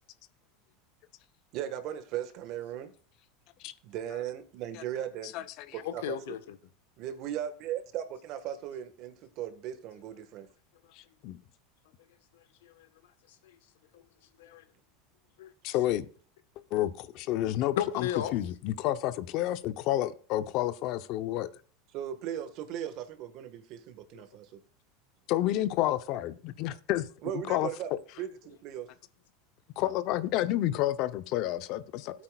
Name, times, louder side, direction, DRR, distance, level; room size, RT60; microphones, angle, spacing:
voice 1, 1.5-2.9 3.8-5.3 5.7-6.2 7.0-10.5 21.9-24.6 27.2-27.9 28.2-28.9 32.1-32.2, right 10 dB, 50° right, 1.5 m, -37 dB
voice 2, 5.8-6.6 12.3-12.9 13.3-13.6 13.9-14.0 14.4-14.6 15.4-15.5 17.6-18.3 24.1-24.2, left 11 dB, 85° left, 1.2 m, -35 dB
voice 3, 11.0-11.4 15.6-16.1 16.7-18.1 18.3-21.5 25.3-27.1 27.5-27.7 29.8-32.1, left 14 dB, 55° left, 0.7 m, -30 dB
16.0 x 8.6 x 2.4 m
supercardioid pair, 135°, 0 cm